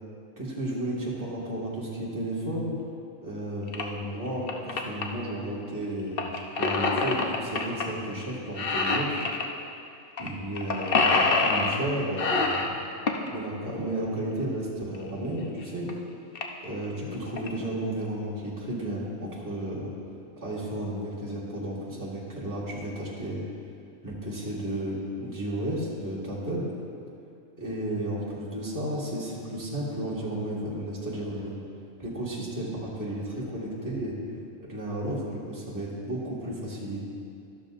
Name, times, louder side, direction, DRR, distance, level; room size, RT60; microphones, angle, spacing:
voice 1, 0.4-2.8 3.2-9.2 10.2-12.6 13.3-15.9 16.6-19.9 20.4-23.4 24.0-26.7 27.6-31.6 32.0-34.2 34.6-37.0, right 1 dB, 15° right, -7 dB, 1.8 m, -33 dB
sound 1, 3.7-3.8 4.3-5.0 6.2-7.8 8.1-8.3 8.6-9.5 10.2-10.3 10.6-11.8 12.2-13.3 14.9-15.0 15.6-15.7 15.9-16.0 16.4-16.6 17.1-17.5, left 4 dB, 50° left, 0.9 m, -25 dB
13.0 x 12.0 x 2.5 m, 2.5 s
omnidirectional pair, 1.4 m